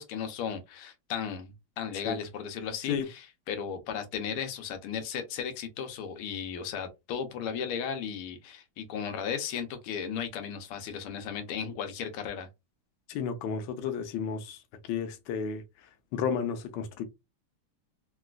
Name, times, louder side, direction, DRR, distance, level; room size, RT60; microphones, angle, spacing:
voice 1, 0.0-12.5, left 7 dB, 90° left, 1.6 m, -35 dB
voice 2, 13.1-14.6 14.9-15.6 16.1-17.0, left 6 dB, 70° left, 1.1 m, -32 dB
3.8 x 2.3 x 2.3 m
omnidirectional pair, 2.4 m